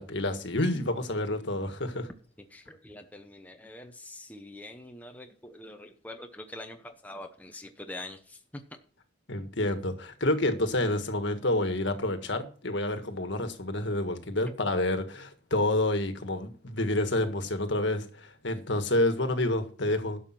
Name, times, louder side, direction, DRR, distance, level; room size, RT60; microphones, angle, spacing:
voice 1, 0.0-2.1 9.3-20.2, left 1 dB, 60° left, 1.6 m, -28 dB
voice 2, 2.5-8.6, left 1 dB, 10° left, 0.9 m, -44 dB
12.0 x 7.1 x 6.0 m
head